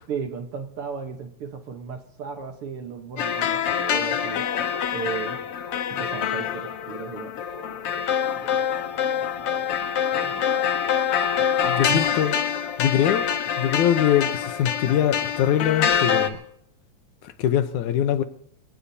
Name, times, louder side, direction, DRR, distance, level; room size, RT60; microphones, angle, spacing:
voice 1, 0.1-4.5 4.9-5.4 5.9-10.6 11.1-12.0, right 6 dB, 60° right, 1.7 m, -36 dB
sound 1, 3.2-16.3, left 8 dB, 60° left, 1.7 m, -25 dB
voice 2, 11.7-12.3 12.8-13.3 13.6-16.4 17.2-18.2, left 10 dB, 75° left, 2.3 m, -22 dB
25.5 x 17.0 x 2.8 m
omnidirectional pair, 3.5 m